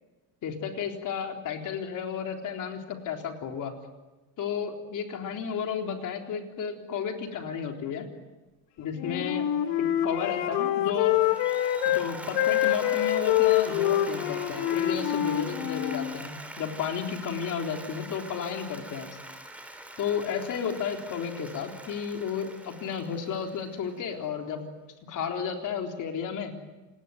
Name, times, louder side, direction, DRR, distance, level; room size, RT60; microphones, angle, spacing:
voice 1, 0.4-3.7 4.4-8.1 8.8-9.5 10.0-11.2 11.9-19.2 20.0-24.6 25.1-26.5, left 7 dB, 40° left, 3 dB, 3.8 m, -33 dB
Wind instrument woodwind instrument, 8.9-12.0 12.3-16.1, left 12 dB, 85° left, 3.0 m, -26 dB
Applause, 11.0-24.2, right 1 dB, 5° right, 3.1 m, -43 dB
28.0 x 20.5 x 9.3 m, 1.1 s
cardioid pair, 165°, 44 cm